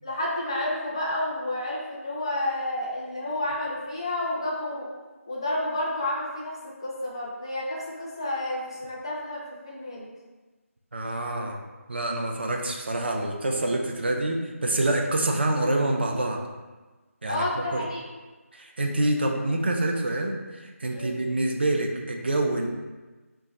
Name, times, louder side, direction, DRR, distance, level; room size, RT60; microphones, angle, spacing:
voice 1, 0.0-4.9 5.3-10.1 17.2-18.0 20.9-21.2, left 1 dB, 20° left, -4 dB, 0.4 m, -30 dB
voice 2, 10.9-11.6 11.9-16.4 17.2-17.8 18.5-22.7, right 1 dB, 45° right, 2 dB, 0.4 m, -26 dB
3.0 x 2.3 x 3.9 m, 1.2 s
figure-of-eight pair, 170°, 8 cm